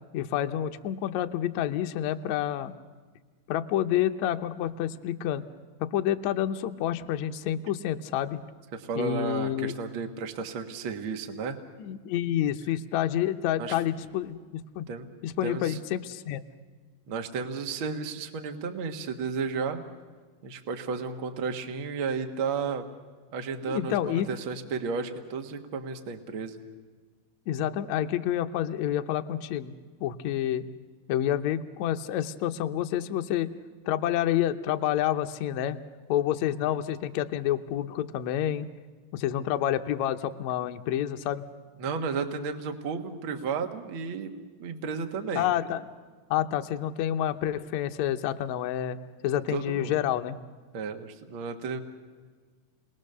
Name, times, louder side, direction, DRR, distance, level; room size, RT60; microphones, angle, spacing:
voice 1, 0.1-2.7 3.5-5.4 5.8-8.4 8.9-9.7 11.8-14.9 15.2-16.4 23.6-24.3 27.5-29.7 30.0-30.6 31.1-33.5 33.8-35.8 36.1-38.7 39.1-41.4 45.3-45.8 46.3-49.0 49.2-50.4, left 11 dB, 80° left, 7 dB, 1.6 m, -28 dB
voice 2, 8.7-11.6 13.6-13.8 14.9-15.1 15.4-15.8 17.1-19.8 20.4-22.9 23.3-26.6 41.8-44.3 44.6-45.5 49.5-49.9 50.7-51.8, right 5 dB, 55° right, 5 dB, 1.5 m, -33 dB
29.5 x 21.0 x 6.7 m, 1.4 s
omnidirectional pair, 4.4 m